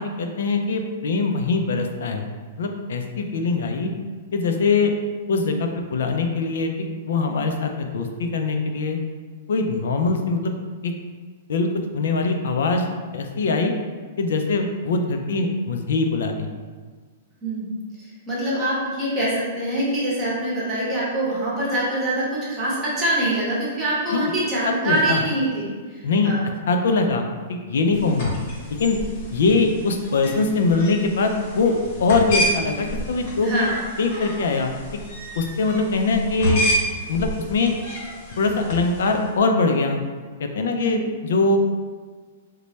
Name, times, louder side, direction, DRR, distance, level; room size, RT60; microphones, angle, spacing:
voice 1, 0.0-2.3 2.6-3.9 4.3-4.9 5.3-6.7 7.1-9.0 9.5-10.5 10.8-10.9 11.5-11.7 11.9-12.9 13.1-13.7 14.2-16.5 24.1-24.3 24.6-25.2 26.0-26.3 26.7-28.3 28.7-29.0 29.3-31.7 32.0-33.7 34.0-34.7 35.4-36.6 37.1-37.7 38.4-40.0 40.4-41.6, left 3 dB, 65° left, 4 dB, 0.4 m, -22 dB
voice 2, 17.4-26.5 28.0-28.2 33.4-33.8 40.7-41.1, right 1 dB, 10° right, -8 dB, 0.8 m, -25 dB
sound 1, 27.9-39.3, equal, 35° left, 0.9 m, -30 dB
3.1 x 2.2 x 4.0 m, 1.5 s
hypercardioid pair, 180°, 0 cm